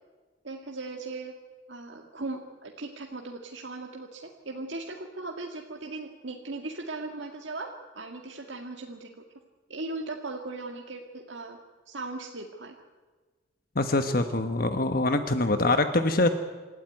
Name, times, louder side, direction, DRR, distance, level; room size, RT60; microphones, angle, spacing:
voice 1, 0.4-1.3 1.7-9.1 9.7-11.6 11.9-12.7, right 3 dB, 75° right, 1 dB, 1.8 m, -38 dB
voice 2, 13.8-16.3, left 2 dB, 50° left, 8 dB, 1.2 m, -24 dB
27.0 x 13.5 x 9.7 m, 1.4 s
head